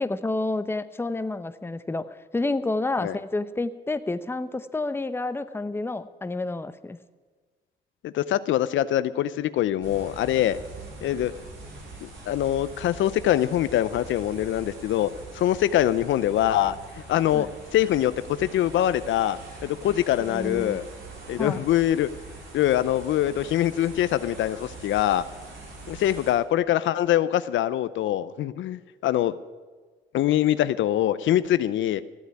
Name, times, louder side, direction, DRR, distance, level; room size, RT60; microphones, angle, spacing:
voice 1, 0.0-7.0 17.3-17.5 20.3-20.8 21.4-21.6, left 2 dB, 10° left, 12 dB, 0.7 m, -29 dB
voice 2, 8.0-10.6 11.0-11.3 12.0-15.1 15.3-16.8 17.1-18.1 18.4-20.8 21.3-22.1 22.5-25.2 25.9-29.3 30.1-32.0, left 12 dB, 75° left, 15 dB, 0.6 m, -24 dB
sound 1, 9.8-26.3, right 3 dB, 75° right, 4.3 m, -43 dB
15.0 x 8.1 x 9.7 m, 1.4 s
cardioid pair, 90°, 20 cm